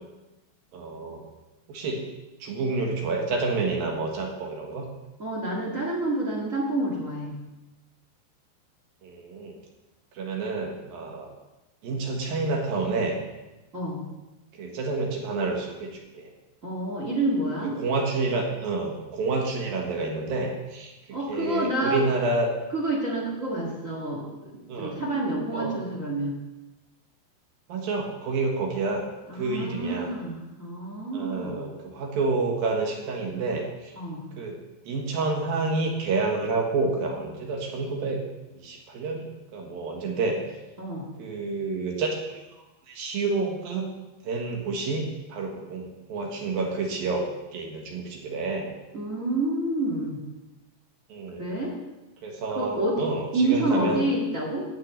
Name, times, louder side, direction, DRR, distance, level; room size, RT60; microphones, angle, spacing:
voice 1, 0.7-1.2 1.7-2.0 2.4-4.9 9.0-9.6 10.1-11.3 11.8-13.2 14.5-16.3 17.8-20.9 21.3-22.5 24.7-25.0 25.5-25.7 27.7-29.0 29.3-30.1 31.1-33.9 34.4-34.6 34.8-38.2 38.6-40.4 41.2-42.4 42.9-43.9 44.2-47.3 47.5-48.7 51.1-51.6 52.2-54.0, right 3 dB, 65° right, 1 dB, 3.1 m, -29 dB
voice 2, 5.2-7.3 13.7-14.0 16.6-17.8 21.1-22.0 22.7-26.3 29.3-31.6 33.9-34.3 40.8-41.0 48.9-50.2 51.4-51.7 52.5-53.0 53.3-54.6, right 2 dB, 45° right, -2 dB, 1.0 m, -28 dB
12.0 x 5.7 x 8.9 m, 1.0 s
omnidirectional pair, 5.1 m